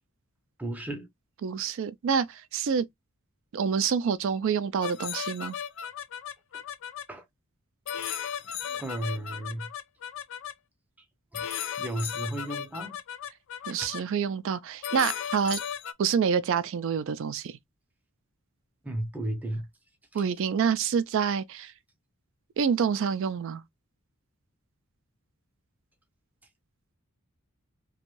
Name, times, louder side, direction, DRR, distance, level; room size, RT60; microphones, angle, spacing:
voice 1, 0.6-1.1 7.1-7.2 8.7-9.7 11.3-13.0 13.6-13.9 18.8-19.7, right 1 dB, 5° right, 0.5 m, -34 dB
voice 2, 1.4-2.8 3.5-5.6 13.7-15.6 16.0-17.5 20.1-21.7 22.6-23.6, right 6 dB, 60° right, 0.3 m, -27 dB
sound 1, 4.8-7.0 7.9-10.5 11.3-14.0 14.8-15.9, left 9 dB, 60° left, 0.4 m, -36 dB
2.6 x 2.2 x 3.0 m
head